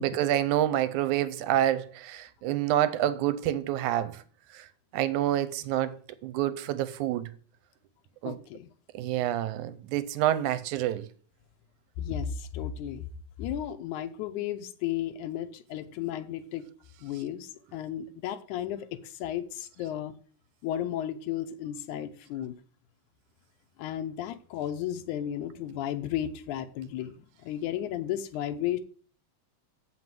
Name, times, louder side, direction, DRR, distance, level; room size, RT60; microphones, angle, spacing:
voice 1, 0.0-4.2 4.5-4.7 4.9-5.9 6.2-7.3 8.2-8.4 8.9-11.1, right 12 dB, 80° right, 2.1 m, -27 dB
voice 2, 8.2-8.7 12.0-13.0 13.4-16.7 17.0-20.1 20.6-22.6 23.8-28.8, left 11 dB, 80° left, 2.2 m, -34 dB
7.7 x 5.7 x 7.6 m
omnidirectional pair, 3.4 m